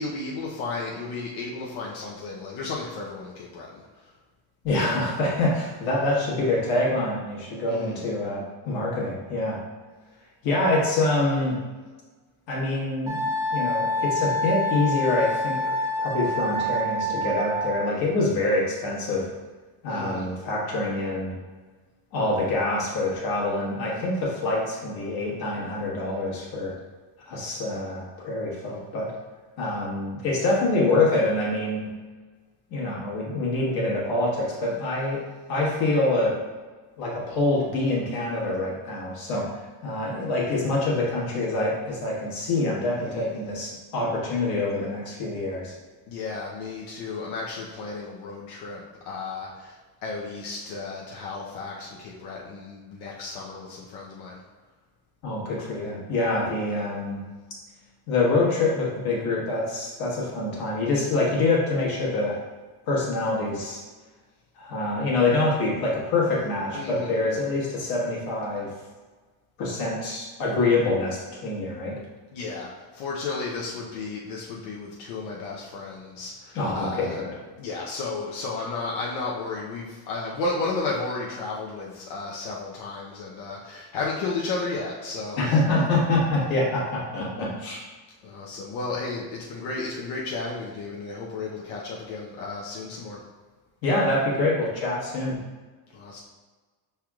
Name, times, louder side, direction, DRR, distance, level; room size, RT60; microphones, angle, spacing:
voice 1, 0.0-4.1 7.7-8.1 19.9-20.3 43.0-43.4 46.1-54.4 66.7-67.2 72.3-77.2 77.6-85.9 88.2-93.2 95.9-96.2, left 3 dB, 85° left, -3 dB, 0.8 m, -33 dB
voice 2, 4.6-9.6 10.4-11.6 12.5-13.2 13.5-19.3 19.8-21.4 22.1-26.7 27.3-29.1 29.6-31.8 32.7-35.2 35.5-36.3 37.0-45.7 55.2-57.2 58.1-62.4 62.9-63.8 64.6-68.7 69.6-71.9 76.5-77.4 85.4-87.8 93.8-95.4, left 2 dB, 55° left, -4 dB, 1.4 m, -25 dB
Wind instrument woodwind instrument, 13.1-17.9, left 1 dB, 10° right, 0.5 m, -27 dB
5.9 x 3.4 x 2.3 m, 1.3 s
cardioid pair, 175°, 45 cm